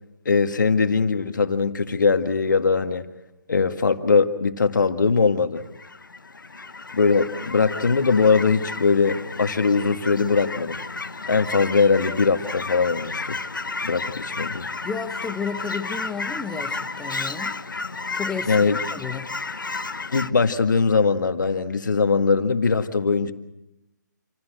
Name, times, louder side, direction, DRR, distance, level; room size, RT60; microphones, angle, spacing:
voice 1, 0.3-3.1 3.5-5.6 6.9-10.8 11.3-13.4 13.8-14.7 18.5-18.8 20.1-23.3, left 4 dB, 70° left, 7 dB, 1.9 m, -21 dB
Fowl / Chirp tweet, 5.6-20.3, left 3 dB, 85° left, 1.3 m, -32 dB
voice 2, 14.8-17.6 18.1-18.6 18.9-19.3, left 5 dB, 5° left, 8 dB, 1.0 m, -32 dB
28.0 x 17.0 x 7.9 m, 0.93 s
figure-of-eight pair, 155°, 11 cm